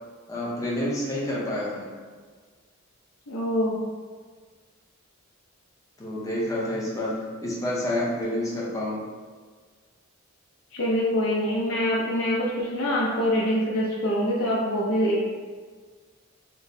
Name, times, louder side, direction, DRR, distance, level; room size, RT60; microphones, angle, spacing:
voice 1, 0.3-1.9 6.0-9.0, left 1 dB, 15° left, -6 dB, 0.7 m, -28 dB
voice 2, 3.3-3.8 10.7-15.2, equal, 70° left, -4 dB, 0.6 m, -25 dB
4.3 x 2.1 x 2.6 m, 1.5 s
head